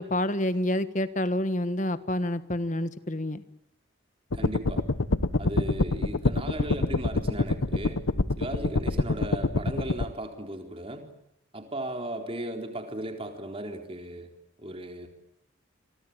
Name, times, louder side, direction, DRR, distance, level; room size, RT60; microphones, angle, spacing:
voice 1, 0.0-3.4, left 1 dB, 35° left, 13 dB, 1.4 m, -28 dB
sound 1, 4.3-10.0, left 2 dB, 90° left, 1.1 m, -26 dB
voice 2, 4.3-4.8 5.4-8.1 8.4-11.1 11.5-14.3 14.6-15.1, right 1 dB, 25° right, 5 dB, 4.1 m, -36 dB
27.0 x 24.0 x 8.8 m, 0.83 s
head